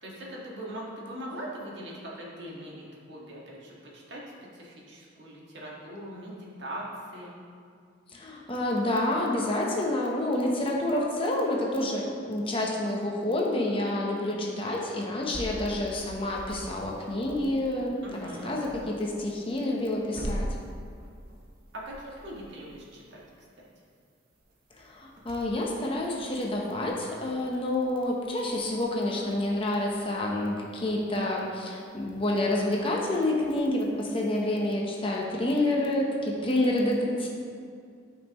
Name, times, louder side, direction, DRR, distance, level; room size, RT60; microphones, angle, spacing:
voice 1, 0.0-4.2 4.5-6.8 7.1-7.3 18.0-18.6 21.7-23.2 23.6-23.7, right 1 dB, 65° right, -4 dB, 1.7 m, -41 dB
voice 2, 8.1-20.5 24.8-37.3, left 1 dB, 25° left, -2 dB, 0.9 m, -28 dB
sound 1, 15.3-34.7, equal, 45° right, 1.0 m, -45 dB
12.0 x 5.5 x 3.0 m, 2.2 s
head